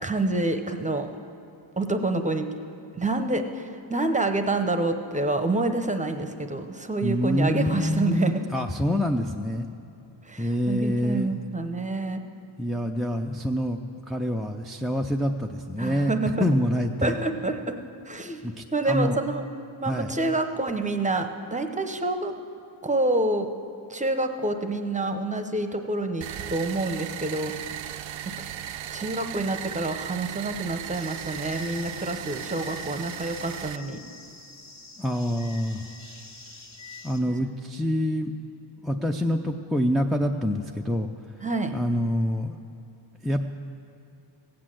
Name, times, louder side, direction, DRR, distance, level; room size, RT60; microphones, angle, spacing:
voice 1, 0.0-1.1 1.8-2.5 2.9-8.4 10.3-12.2 15.8-16.3 17.0-17.7 18.1-18.4 18.7-19.4 19.8-22.3 22.8-23.5 23.9-26.2 26.5-27.5 28.9-34.0 41.4-41.7, right 2 dB, 15° right, 7 dB, 0.8 m, -27 dB
voice 2, 7.0-9.7 10.4-11.3 12.6-13.8 14.1-16.1 16.4-17.2 18.4-19.2 19.9-20.1 35.0-35.8 37.0-38.3 38.8-41.1 41.7-42.6 43.2-43.5, equal, ahead, 3 dB, 0.4 m, -26 dB
sound 1, 26.2-33.8, right 10 dB, 70° right, 0.5 m, -37 dB
sound 2, 30.9-37.2, left 3 dB, 35° left, 1.4 m, -46 dB
16.0 x 8.5 x 7.6 m, 2.6 s
wide cardioid pair, 115°, 48 cm